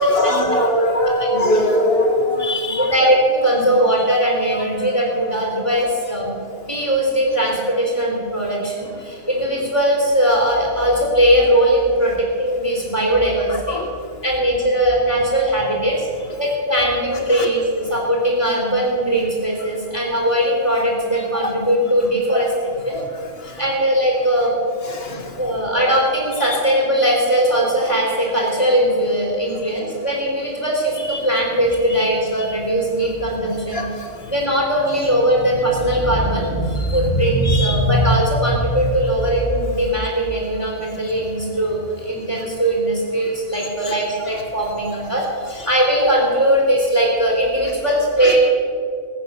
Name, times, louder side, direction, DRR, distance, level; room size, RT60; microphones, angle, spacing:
voice 1, 0.0-2.9 4.8-4.9 13.5-13.9 17.3-17.5 21.3-21.5 22.3-22.4 22.9-23.0 24.9-25.2 31.1-31.2 33.7-33.9 36.9-37.0 37.4-37.8 43.8-43.9 48.2-48.3, left 1 dB, 50° left, 3 dB, 2.3 m, -21 dB
voice 2, 1.3-1.7 2.8-6.3 6.6-13.8 14.2-16.1 16.4-22.5 22.8-23.0 23.4-24.5 25.4-33.9 34.3-48.4, right 1 dB, 20° left, -3 dB, 3.6 m, -19 dB
21.5 x 8.9 x 7.0 m, 2.3 s
omnidirectional pair, 1.3 m